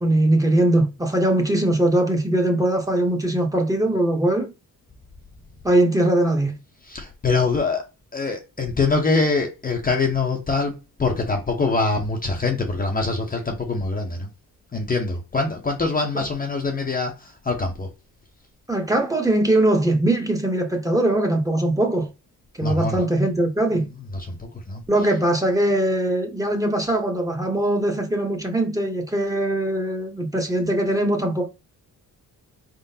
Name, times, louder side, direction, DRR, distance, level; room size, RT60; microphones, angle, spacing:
voice 1, 0.0-4.5 5.6-6.5 18.7-22.1 22.6-23.9 24.9-31.5, right 1 dB, 10° right, 1.0 m, -21 dB
voice 2, 6.8-7.8 8.1-14.3 14.7-17.9 22.6-23.1 24.1-24.8, left 3 dB, 25° left, 0.7 m, -24 dB
4.4 x 3.7 x 2.8 m
cardioid pair, 130°, 35 cm